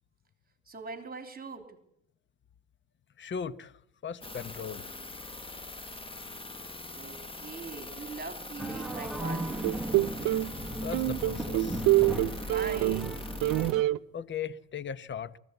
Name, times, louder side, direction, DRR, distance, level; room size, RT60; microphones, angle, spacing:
voice 1, 0.7-1.8 6.9-9.8 12.4-13.2, right 5 dB, 25° right, 3.3 m, -41 dB
voice 2, 3.2-4.9 10.8-11.8 14.1-15.4, left 7 dB, 35° left, 1.0 m, -38 dB
sound 1, 4.2-13.7, left 2 dB, 15° left, 1.3 m, -42 dB
sound 2, 8.6-13.8, right 1 dB, ahead, 1.4 m, -37 dB
sound 3, 9.6-10.5 10.9-13.1 13.4-14.0, right 18 dB, 70° right, 0.8 m, -26 dB
23.5 x 15.5 x 8.1 m
supercardioid pair, 85°, 34 cm